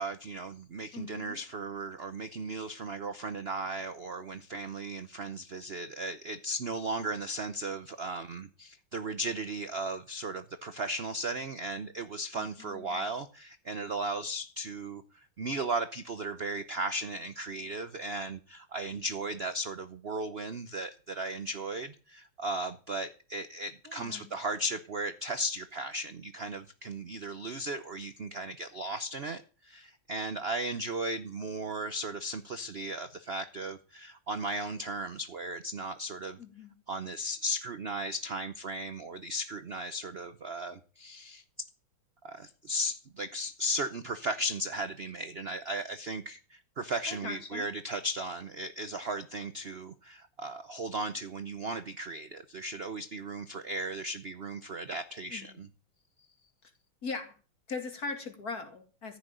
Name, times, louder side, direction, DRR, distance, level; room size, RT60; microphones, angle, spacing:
voice 1, 0.0-36.4 36.9-41.4 42.2-55.7, right 2 dB, 70° right, 11 dB, 0.5 m, -36 dB
voice 2, 0.9-1.4 12.3-13.0 23.8-24.3 36.4-36.8 47.1-47.7 55.3-55.6 57.0-57.3 57.7-59.2, left 4 dB, 45° left, 6 dB, 2.8 m, -40 dB
14.5 x 6.4 x 9.1 m, 0.38 s
omnidirectional pair, 2.3 m